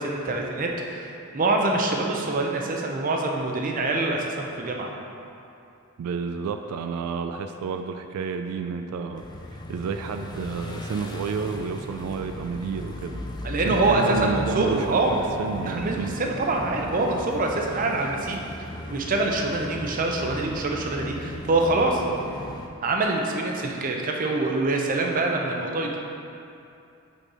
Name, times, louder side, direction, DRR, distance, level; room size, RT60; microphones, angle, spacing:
voice 1, 0.0-4.9 13.4-15.3 15.7-22.0 22.8-26.0, right 2 dB, 35° right, 1 dB, 0.5 m, -25 dB
voice 2, 6.0-9.2 9.5-13.2 13.6-16.1, right 5 dB, 85° right, 7 dB, 0.3 m, -30 dB
sound 1, 9.1-22.7, left 1 dB, 20° left, 0.3 m, -37 dB
5.2 x 4.4 x 4.8 m, 2.7 s
head